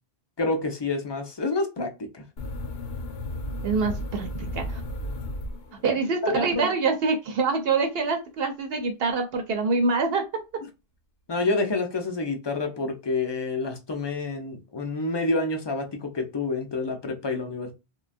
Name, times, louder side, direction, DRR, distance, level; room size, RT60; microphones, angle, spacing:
voice 1, 0.4-2.2 6.2-6.7 11.3-17.7, left 3 dB, 35° left, 0.4 m, -28 dB
sound 1, 2.4-6.1, left 1 dB, 70° left, 0.8 m, -34 dB
voice 2, 3.6-4.8 5.8-10.2, right 4 dB, 70° right, 0.8 m, -25 dB
3.2 x 2.2 x 2.4 m
omnidirectional pair, 1.1 m